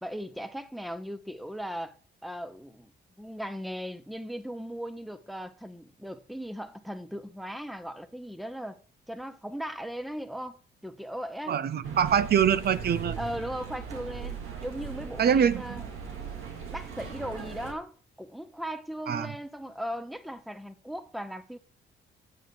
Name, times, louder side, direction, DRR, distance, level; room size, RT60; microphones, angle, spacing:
voice 1, 0.0-2.9 3.2-8.8 9.1-11.6 13.2-15.9 16.7-21.6, equal, ahead, 0.9 m, -38 dB
voice 2, 11.5-13.2 15.2-15.6 19.1-19.3, right 8 dB, 55° right, 0.6 m, -24 dB
sound 1, 11.8-17.7, right 6 dB, 90° right, 2.3 m, -39 dB
9.3 x 7.8 x 4.6 m
cardioid pair, 90°, 20 cm